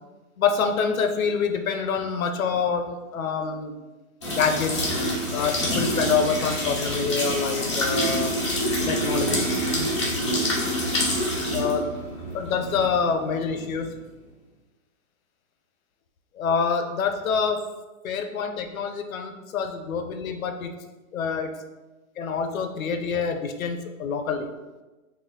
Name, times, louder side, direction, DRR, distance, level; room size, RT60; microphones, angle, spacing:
voice 1, 0.4-3.7 4.4-4.9 5.3-8.3 8.9-9.5 11.5-11.9 12.3-13.9 16.3-17.7 18.0-20.7 21.1-21.5 22.2-24.5, left 6 dB, 70° left, 6 dB, 0.6 m, -26 dB
sound 1, 4.2-13.9, equal, 20° left, 0.4 m, -26 dB
4.1 x 2.3 x 3.8 m, 1.2 s
hypercardioid pair, 160°, 43 cm